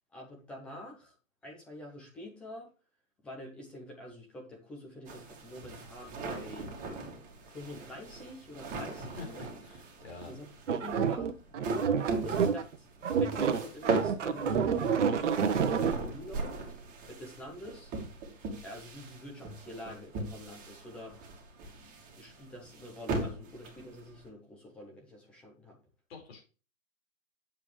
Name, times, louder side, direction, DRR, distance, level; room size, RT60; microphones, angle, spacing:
voice 1, 0.1-1.2 1.4-2.7 3.2-6.7 7.5-9.5 10.3-11.3 12.2-12.9 13.1-16.6 17.1-17.9 18.6-21.3 21.6-25.8, left 1 dB, 5° left, -1 dB, 0.4 m, -47 dB
sound 1, 5.1-24.3, right 3 dB, 20° right, 2.2 m, -39 dB
voice 2, 9.6-10.4 26.1-26.4, left 4 dB, 45° left, 2 dB, 4.8 m, -46 dB
sound 2, 10.7-12.7 13.0-15.9, right 6 dB, 60° right, 1.1 m, -28 dB
9.1 x 7.2 x 3.2 m, 0.34 s
hypercardioid pair, 140°, 41 cm